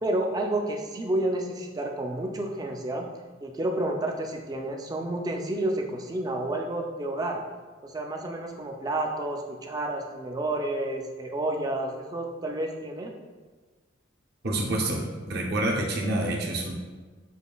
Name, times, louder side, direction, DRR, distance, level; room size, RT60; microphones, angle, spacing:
voice 1, 0.0-3.1 3.4-7.4 7.8-13.1, right 1 dB, 20° right, 2 dB, 0.3 m, -30 dB
voice 2, 14.4-16.7, right 1 dB, 55° right, -1 dB, 0.7 m, -27 dB
6.9 x 2.5 x 2.3 m, 1.4 s
head